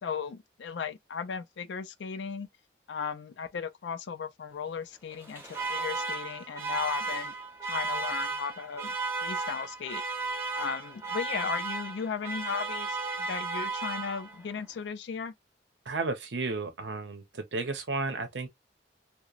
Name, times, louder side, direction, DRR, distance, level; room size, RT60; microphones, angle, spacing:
voice 1, 0.0-2.5 2.9-7.3 7.7-8.9 9.2-10.0 10.5-15.3, left 6 dB, 80° left, 0.4 m, -36 dB
Alarm, 5.1-14.5, right 3 dB, 15° right, 0.7 m, -34 dB
voice 2, 15.9-18.5, right 3 dB, 80° right, 0.8 m, -33 dB
2.9 x 2.1 x 2.4 m
head